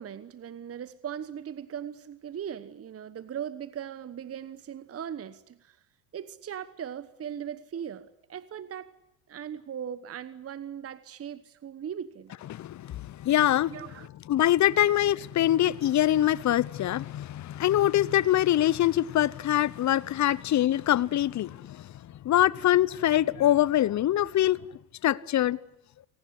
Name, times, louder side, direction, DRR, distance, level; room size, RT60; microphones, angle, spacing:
voice 1, 0.0-5.8 6.1-8.9 9.3-12.3 13.7-14.1 20.3-20.4, right 9 dB, 30° right, 1.2 m, -39 dB
voice 2, 12.5-13.8 14.3-21.9 22.2-24.6 25.0-25.6, left 13 dB, 35° left, 0.9 m, -24 dB
29.0 x 18.5 x 8.1 m
hypercardioid pair, 80°, 48 cm